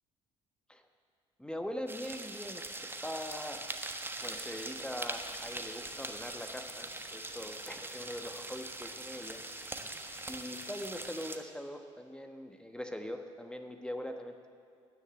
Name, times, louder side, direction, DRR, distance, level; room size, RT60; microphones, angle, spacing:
voice 1, 1.4-2.7 3.0-3.7 4.2-9.4 10.3-14.5, equal, 5° left, 5 dB, 1.1 m, -42 dB
sound 1, 1.9-11.4, right 2 dB, 15° right, 1.3 m, -42 dB
sound 2, 4.2-11.2, left 3 dB, 70° left, 2.3 m, -57 dB
11.0 x 9.8 x 8.6 m, 2.4 s
hypercardioid pair, 55°, 16 cm